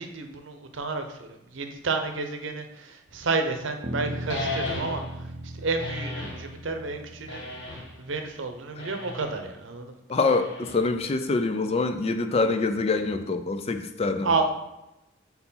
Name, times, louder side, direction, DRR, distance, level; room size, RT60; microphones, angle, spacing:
voice 1, 0.0-5.0 5.6-7.6 8.0-9.9 14.2-14.6, right 3 dB, 85° right, 6 dB, 0.7 m, -30 dB
Bass guitar, 3.8-8.3, right 1 dB, 35° right, 0.6 m, -38 dB
sound 1, 4.3-5.2 5.8-6.5 7.3-8.0 8.8-9.4 10.3-11.0, left 2 dB, 70° left, 1.0 m, -35 dB
voice 2, 10.1-14.3, left 3 dB, 30° left, 8 dB, 0.4 m, -25 dB
4.5 x 4.0 x 5.5 m, 0.92 s
head